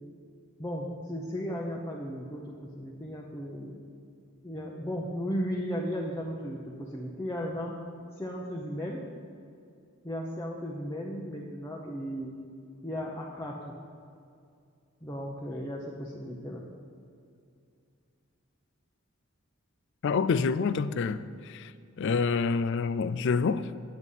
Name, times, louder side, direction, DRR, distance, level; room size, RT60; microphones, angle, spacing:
voice 1, 0.6-3.8 4.4-7.8 8.2-9.0 10.0-12.3 12.8-13.7 15.0-16.6, equal, 15° left, 0.8 m, -35 dB
voice 2, 20.0-21.7 22.0-23.8, left 5 dB, 60° left, 0.4 m, -27 dB
9.1 x 8.2 x 5.5 m
head